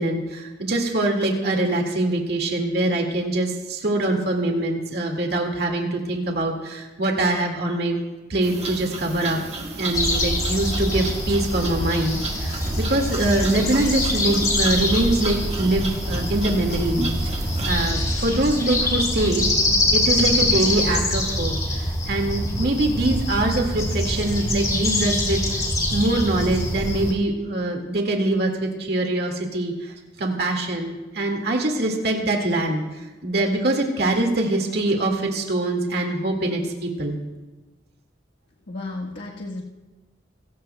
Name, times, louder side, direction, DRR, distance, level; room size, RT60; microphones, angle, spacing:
voice 1, 0.0-8.0 8.3-9.4 9.8-17.3 17.6-25.6 25.9-29.9 30.2-37.2, right 2 dB, 60° right, 2 dB, 2.0 m, -23 dB
sound 1, 8.4-17.9, right 2 dB, 35° right, 1.6 m, -33 dB
sound 2, 9.9-27.1, left 1 dB, 20° left, 3.2 m, -24 dB
voice 2, 38.7-39.6, left 2 dB, 75° left, -3 dB, 1.4 m, -33 dB
26.5 x 15.0 x 2.3 m, 1.2 s
head